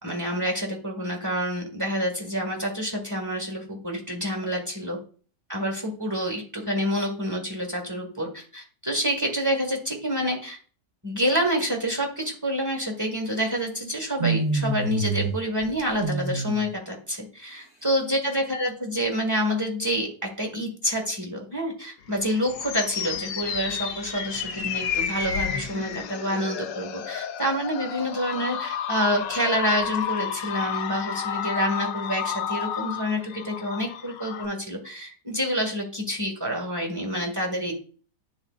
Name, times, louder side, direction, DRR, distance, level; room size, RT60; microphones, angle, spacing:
voice 1, 0.0-5.0 5.5-10.6 11.0-37.7, equal, 10° right, 2 dB, 1.3 m, -28 dB
sound 1, 14.2-15.4 15.6-16.6, right 3 dB, 35° right, 0.8 m, -26 dB
sound 2, 22.1-34.5, left 8 dB, 90° left, 1.3 m, -31 dB
10.5 x 3.8 x 2.4 m, 0.41 s
omnidirectional pair, 1.9 m